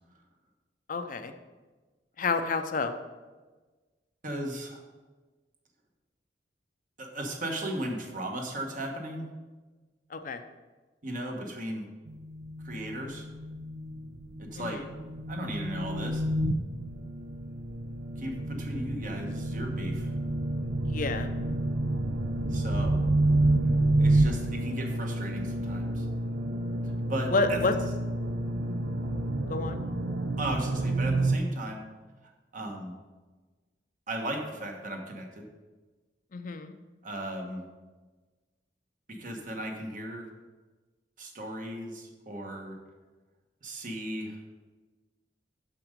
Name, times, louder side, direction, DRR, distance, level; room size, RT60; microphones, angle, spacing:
voice 1, 0.9-1.3 2.2-2.9 10.1-10.4 14.6-14.8 20.9-21.3 27.3-27.7 29.5-29.8 36.3-36.7, left 3 dB, 50° left, 8 dB, 0.5 m, -29 dB
voice 2, 4.2-4.8 7.0-9.3 11.0-11.9 12.6-13.3 14.4-14.8 15.3-16.3 18.2-20.1 22.5-23.0 24.0-26.1 27.1-27.6 30.4-31.8 32.5-32.9 34.1-35.5 37.0-37.6 39.1-40.3 41.2-42.8 43.6-44.4, right 1 dB, 50° right, 2 dB, 1.2 m, -36 dB
sound 1, 12.1-31.4, right 2 dB, 70° right, 0.6 m, -29 dB
6.3 x 5.8 x 5.1 m, 1.3 s
head